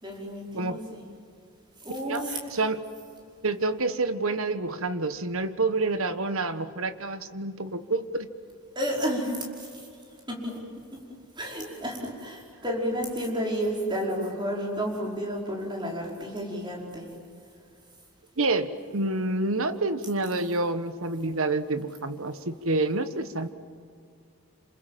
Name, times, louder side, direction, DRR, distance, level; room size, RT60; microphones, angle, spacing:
voice 1, 0.0-1.0 1.8-2.7 8.8-9.8 10.3-10.6 10.9-11.0 11.4-17.1, equal, 20° right, -2 dB, 5.3 m, -31 dB
voice 2, 2.0-2.9 3.4-8.3 18.4-23.5, right 2 dB, 70° right, 10 dB, 1.4 m, -28 dB
28.0 x 27.0 x 7.6 m, 2.4 s
head